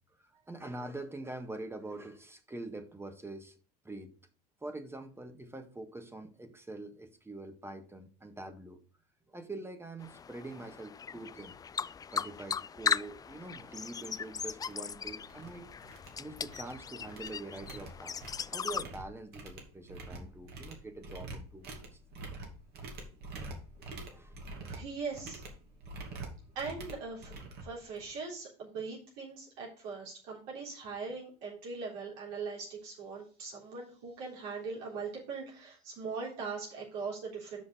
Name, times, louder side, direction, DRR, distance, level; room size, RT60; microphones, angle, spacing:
voice 1, 0.2-3.6 3.8-4.1 4.6-8.8 9.3-11.6 12.1-22.0 23.1-23.2 23.8-24.4, right 2 dB, 10° right, 7 dB, 1.5 m, -45 dB
sound 1, 10.0-18.8, left 6 dB, 20° left, 0.3 m, -38 dB
sound 2, 14.1-14.2 14.7-14.9 15.2-15.5 15.8-16.7 17.0-28.3, right 2 dB, 55° right, 2.6 m, -46 dB
voice 2, 24.7-25.4 26.6-27.4 27.6-37.6, right 4 dB, 70° right, -4 dB, 3.7 m, -40 dB
6.6 x 5.6 x 6.8 m, 0.39 s
hypercardioid pair, 85°, 20 cm